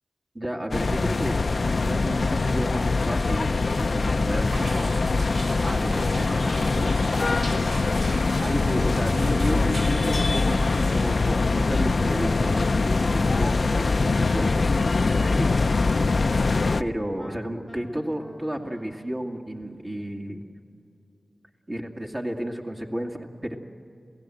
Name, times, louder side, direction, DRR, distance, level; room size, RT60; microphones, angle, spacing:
voice 1, 0.3-1.4 1.7-5.0 5.6-7.0 8.4-16.2 16.8-20.4 21.7-23.6, right 1 dB, 30° right, 0 dB, 2.1 m, -32 dB
sound 1, 0.7-16.8, left 3 dB, 60° left, 0.5 m, -23 dB
sound 2, 4.5-11.1, right 1 dB, 90° right, 3.6 m, -40 dB
Wind instrument woodwind instrument, 13.6-19.2, left 1 dB, 20° left, 1.1 m, -44 dB
28.5 x 17.0 x 7.8 m, 2.7 s
wide cardioid pair, 55°, 0 cm